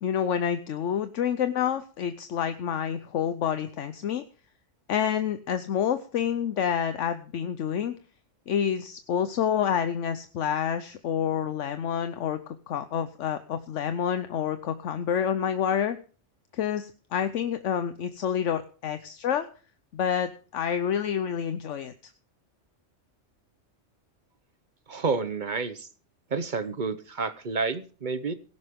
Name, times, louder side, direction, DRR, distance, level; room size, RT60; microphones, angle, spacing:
voice 1, 0.0-4.2 4.9-7.9 8.5-16.0 16.5-19.5 19.9-21.9, left 8 dB, 75° left, 10 dB, 1.1 m, -28 dB
voice 2, 24.9-25.9 26.3-28.3, right 4 dB, 45° right, 12 dB, 0.9 m, -29 dB
17.5 x 11.0 x 3.6 m, 0.38 s
omnidirectional pair, 1.3 m